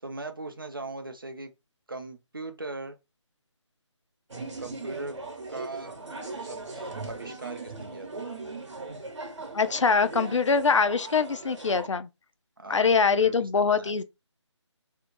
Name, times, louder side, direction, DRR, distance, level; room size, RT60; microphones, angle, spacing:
voice 1, 0.0-1.5 1.9-3.0 4.6-5.2 5.5-6.0 6.4-8.2 12.6-13.9, right 2 dB, 45° right, 0.5 m, -39 dB
sound 1, 4.3-11.9, right 3 dB, 70° right, 0.9 m, -39 dB
voice 2, 9.5-12.1 12.7-14.0, left 5 dB, 75° left, 0.4 m, -23 dB
2.7 x 2.2 x 2.5 m
figure-of-eight pair, 180°, 16 cm